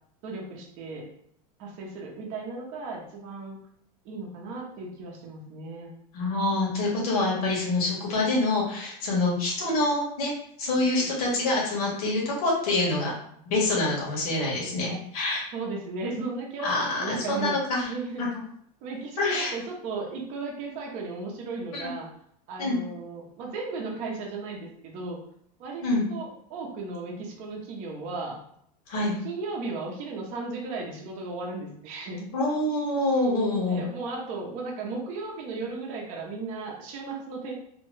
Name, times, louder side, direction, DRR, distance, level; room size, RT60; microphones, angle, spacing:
voice 1, 0.2-1.1 1.6-3.6 4.0-5.9 10.9-11.1 15.5-17.6 17.9-18.3 18.8-22.1 22.5-25.2 25.6-28.4 28.9-32.3 33.7-37.5, right 3 dB, 40° right, -1 dB, 0.7 m, -35 dB
voice 2, 6.1-10.3 10.6-13.1 13.5-15.5 16.6-17.9 18.2-18.3 19.2-19.5 21.7-21.9 22.6-22.8 25.8-26.0 28.9-29.1 32.3-33.8, left 2 dB, 70° left, -4 dB, 1.3 m, -26 dB
2.8 x 2.1 x 3.1 m, 0.67 s
supercardioid pair, 165°, 20 cm